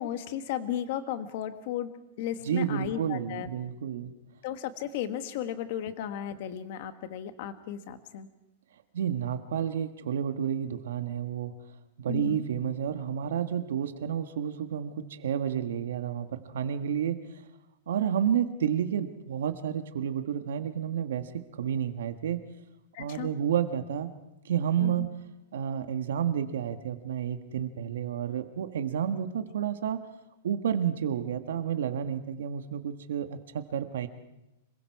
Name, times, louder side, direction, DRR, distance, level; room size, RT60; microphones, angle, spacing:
voice 1, 0.0-3.5 4.4-8.3 12.1-12.5 22.9-23.3 24.8-25.1, left 10 dB, 40° left, 10 dB, 1.4 m, -35 dB
voice 2, 2.4-4.1 8.9-11.5 12.0-17.2 17.9-22.4 23.0-24.1 24.4-25.0 25.5-30.0 30.4-34.1, right 9 dB, 75° right, 8 dB, 1.5 m, -30 dB
26.5 x 22.5 x 4.8 m, 0.94 s
supercardioid pair, 175°, 0 cm